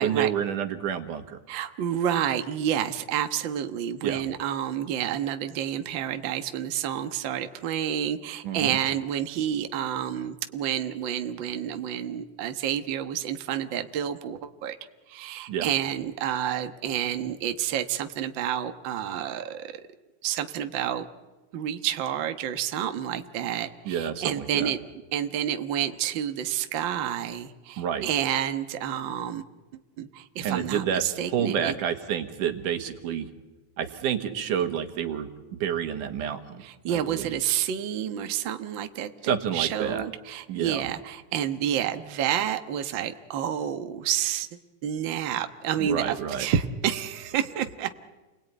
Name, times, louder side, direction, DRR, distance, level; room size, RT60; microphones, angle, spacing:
voice 1, 0.0-1.4 4.0-4.2 8.4-8.8 15.5-15.7 23.9-24.7 27.8-28.1 30.4-31.0 31.3-33.3 33.8-36.6 37.1-37.4 39.2-40.1 40.5-40.8 45.8-46.5, right 8 dB, 80° right, 7 dB, 3.2 m, -29 dB
voice 2, 1.5-14.8 15.1-19.8 20.2-21.1 21.5-24.8 25.1-29.4 29.7-31.7 36.6-44.5 44.8-47.9, right 10 dB, 50° right, 7 dB, 1.5 m, -29 dB
30.0 x 21.0 x 9.3 m, 1.2 s
omnidirectional pair, 3.6 m